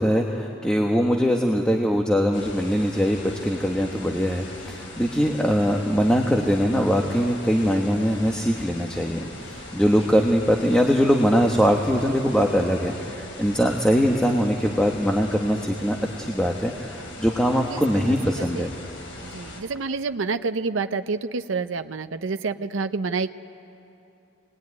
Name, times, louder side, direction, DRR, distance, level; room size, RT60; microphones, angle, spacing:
voice 1, 0.0-18.7, equal, 5° left, 1 dB, 1.2 m, -22 dB
sound 1, 2.3-19.6, left 2 dB, 75° left, 3.7 m, -40 dB
voice 2, 17.7-18.7 19.2-23.3, right 4 dB, 85° right, 10 dB, 0.6 m, -28 dB
26.0 x 19.5 x 9.6 m, 2.8 s
head